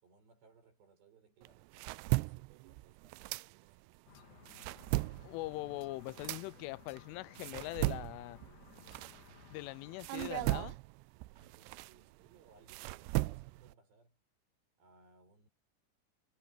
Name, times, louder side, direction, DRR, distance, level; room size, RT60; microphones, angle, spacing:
voice 1, 0.0-3.2 3.5-4.2 11.3-14.2 14.8-15.5, right 4 dB, 60° right, 8.9 m, -65 dB
sound 1, 1.4-4.0 4.3-9.6 10.0-13.7, right 21 dB, 85° right, 2.5 m, -38 dB
sound 2, 4.1-4.4 5.8-6.1 6.9-7.2 8.9-9.3, left 9 dB, 70° left, 3.8 m, -65 dB
sound 3, 4.1-10.0, left 5 dB, 55° left, 4.1 m, -59 dB
voice 2, 5.2-8.4 9.5-10.8, left 20 dB, 85° left, 3.1 m, -42 dB
omnidirectional pair, 5.5 m